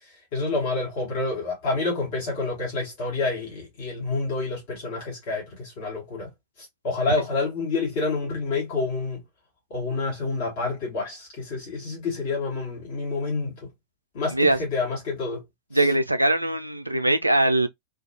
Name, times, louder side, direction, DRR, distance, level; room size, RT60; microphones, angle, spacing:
voice 1, 0.0-6.3 6.6-9.2 9.7-13.7 14.1-15.4 15.7-15.9, left 3 dB, 50° left, 1.0 m, -28 dB
voice 2, 15.7-17.7, right 2 dB, 85° right, 0.3 m, -21 dB
2.3 x 2.2 x 2.6 m
figure-of-eight pair, 90°, 0 cm